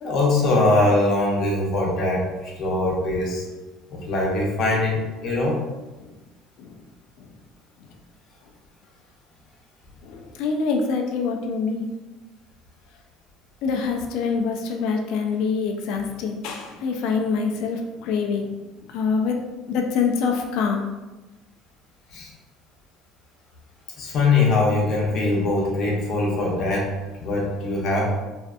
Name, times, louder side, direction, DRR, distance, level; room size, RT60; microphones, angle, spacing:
voice 1, 0.0-3.4 3.9-5.5 22.1-22.3 24.0-26.9 27.2-28.1, left 2 dB, 55° left, -2 dB, 0.7 m, -22 dB
voice 2, 10.0-11.9 13.6-18.5 18.9-19.4 19.7-20.9, left 5 dB, 70° left, 3 dB, 0.3 m, -25 dB
2.5 x 2.2 x 2.4 m, 1.1 s
cardioid pair, 120°, 0 cm